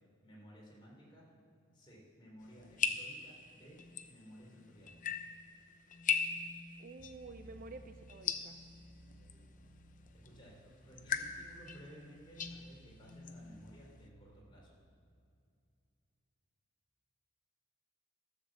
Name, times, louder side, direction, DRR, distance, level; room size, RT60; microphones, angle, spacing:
voice 1, 0.2-1.2 1.7-3.8 4.0-4.9 10.2-14.7, equal, 25° left, -4 dB, 3.4 m, -56 dB
sound 1, 2.4-14.1, left 6 dB, 40° left, 0.6 m, -41 dB
voice 2, 6.8-8.6, right 3 dB, 45° right, 9 dB, 0.4 m, -50 dB
Airy Pad, 7.0-14.4, right 1 dB, 20° right, 1.9 m, -60 dB
13.5 x 7.4 x 7.2 m, 2.4 s
head